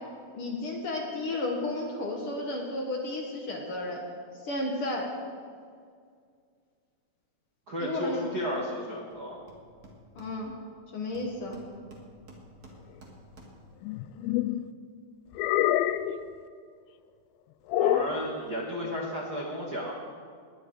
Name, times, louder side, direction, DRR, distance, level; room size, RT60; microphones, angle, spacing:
voice 1, 0.3-4.0 4.4-5.1 7.8-8.3 10.1-10.5 10.9-11.6, left 2 dB, 65° left, 0 dB, 1.4 m, -33 dB
voice 2, 7.7-9.4 17.8-19.9, equal, 75° right, -2 dB, 0.9 m, -33 dB
Hammer, 9.1-9.2 9.5-10.8 11.1-13.8, right 1 dB, 45° right, 1.2 m, -51 dB
sound 1, 13.8-14.6 15.4-16.2 17.7-18.2, left 13 dB, 85° left, 2.2 m, -26 dB
20.0 x 10.0 x 4.7 m, 2.1 s
omnidirectional pair, 4.6 m